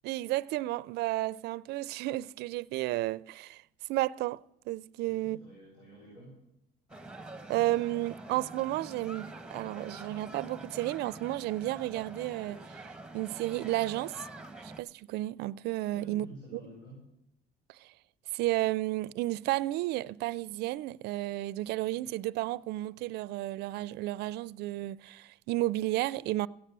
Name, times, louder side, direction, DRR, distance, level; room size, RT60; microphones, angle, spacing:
voice 1, 0.0-3.6 3.9-5.4 7.5-12.8 13.1-14.3 14.6-16.3 16.5-16.6 17.7-17.9 18.3-26.5, right 17 dB, 80° right, 0.4 m, -32 dB
voice 2, 5.0-6.3 15.9-17.0, equal, 80° left, 6.8 m, -49 dB
sound 1, 6.9-14.8, right 2 dB, 5° right, 1.1 m, -46 dB
16.0 x 8.6 x 6.7 m
cardioid pair, 110°, 17 cm